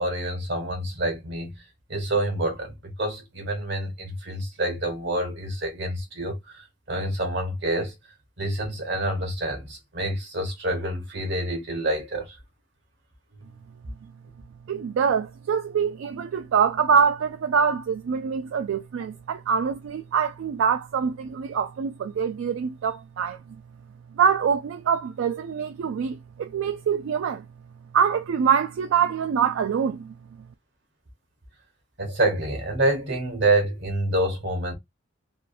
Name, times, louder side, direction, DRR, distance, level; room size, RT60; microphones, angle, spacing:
voice 1, 0.0-1.5 1.9-7.9 8.4-12.3 32.0-34.7, right 1 dB, 60° right, 1.1 m, -27 dB
voice 2, 14.7-23.4 24.2-27.4 27.9-30.1, right 7 dB, 80° right, 0.3 m, -24 dB
3.4 x 2.6 x 2.4 m
head